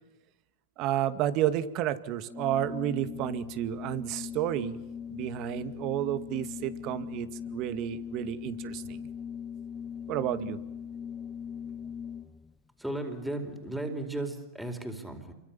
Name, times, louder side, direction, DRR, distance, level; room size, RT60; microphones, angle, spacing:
voice 1, 0.8-4.8 5.1-9.1 10.1-10.6, right 12 dB, 45° right, 12 dB, 2.1 m, -31 dB
Organ, 2.3-12.5, left 7 dB, 15° left, 1.1 m, -40 dB
voice 2, 12.8-15.3, right 1 dB, 5° right, 5 dB, 4.5 m, -35 dB
28.5 x 24.0 x 7.3 m, 0.97 s
hypercardioid pair, 110°, 0 cm